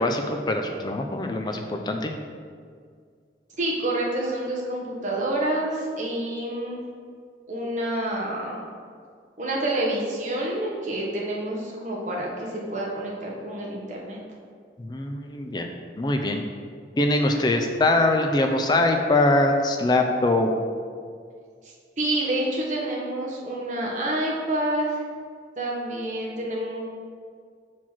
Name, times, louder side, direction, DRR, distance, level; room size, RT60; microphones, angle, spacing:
voice 1, 0.0-2.1 14.8-15.7 16.0-16.4 17.0-20.5, left 2 dB, 25° left, 4 dB, 0.4 m, -23 dB
voice 2, 3.6-6.8 7.5-8.6 9.4-14.2 21.6-25.0 25.6-26.8, right 1 dB, 45° right, -3 dB, 1.1 m, -28 dB
5.8 x 4.6 x 4.4 m, 2.1 s
head